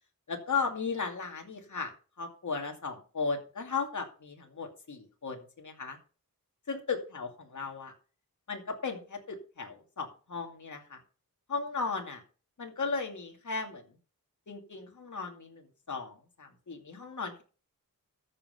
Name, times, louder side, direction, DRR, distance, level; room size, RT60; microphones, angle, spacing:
voice 1, 0.3-6.0 6.7-7.9 8.5-11.0 11.5-12.2 12.6-13.8 14.5-17.4, left 4 dB, 55° left, 2 dB, 2.4 m, -36 dB
13.5 x 5.8 x 5.7 m, 0.37 s
wide cardioid pair, 110°, 35 cm